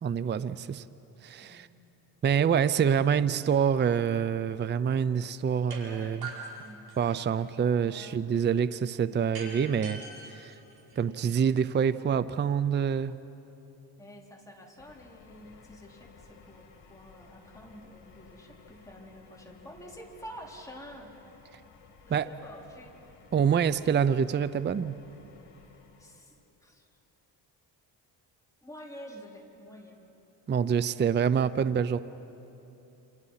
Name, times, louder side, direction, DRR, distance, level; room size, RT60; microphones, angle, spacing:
voice 1, 0.0-0.8 1.2-1.7 2.2-6.3 7.0-10.0 10.3-10.5 11.0-13.2 22.1-22.3 23.3-25.0 30.5-32.0, right 7 dB, 25° right, 15 dB, 0.5 m, -26 dB
sound 1, 5.7-5.8 6.2-7.4 9.3-11.3, right 3 dB, 55° right, 5.5 m, -43 dB
voice 2, 5.8-6.8 7.8-8.3 14.0-21.1 22.0-23.0 26.0-26.4 26.6-26.9 28.6-30.0, equal, 5° left, -2 dB, 4.0 m, -48 dB
sound 2, 14.8-26.4, left 4 dB, 65° left, 3.7 m, -56 dB
28.5 x 28.0 x 5.7 m, 3.0 s
cardioid pair, 110°, 43 cm